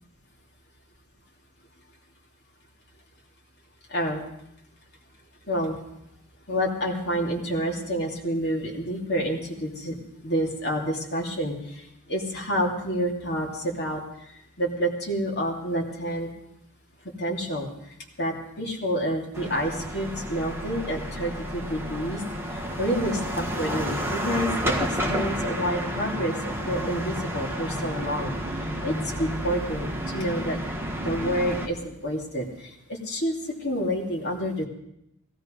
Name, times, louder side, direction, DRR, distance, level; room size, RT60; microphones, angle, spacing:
voice 1, 3.9-4.2 5.5-5.8 6.5-10.0 10.2-14.0 14.6-16.3 17.2-17.7 18.2-22.2 22.8-28.3 28.8-30.6 31.0-34.6, equal, 50° left, 0 dB, 2.9 m, -28 dB
sound 1, 19.3-31.7, equal, 10° right, 1.6 m, -31 dB
16.5 x 16.5 x 5.3 m, 0.80 s
head